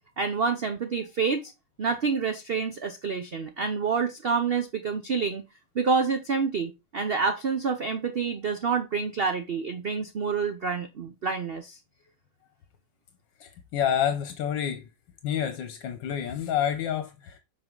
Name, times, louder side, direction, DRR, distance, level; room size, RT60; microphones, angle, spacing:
voice 1, 0.2-1.5 1.8-5.4 5.7-11.8, right 5 dB, 90° right, 0.5 m, -28 dB
voice 2, 13.4-14.9 15.2-17.4, left 9 dB, 75° left, 1.5 m, -28 dB
7.9 x 4.7 x 3.8 m
omnidirectional pair, 2.0 m